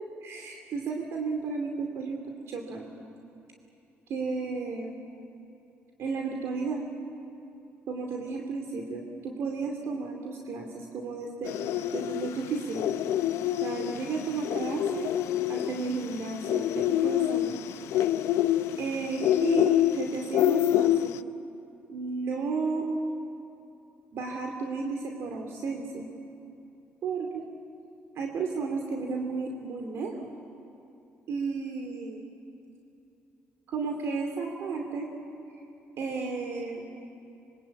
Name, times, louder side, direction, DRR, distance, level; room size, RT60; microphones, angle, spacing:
voice 1, 0.0-3.0 4.1-4.9 6.0-6.8 7.9-11.6 11.9-12.9 13.6-15.1 15.5-17.6 18.8-21.2 21.9-22.9 24.1-26.1 27.0-27.5 28.2-30.3 31.3-32.2 33.7-35.1 36.0-36.9, right 4 dB, 65° right, 2 dB, 2.6 m, -33 dB
sound 1, 11.4-21.2, left 12 dB, 80° left, 0.6 m, -27 dB
25.5 x 24.0 x 8.6 m, 2.9 s
cardioid pair, 100°, 5 cm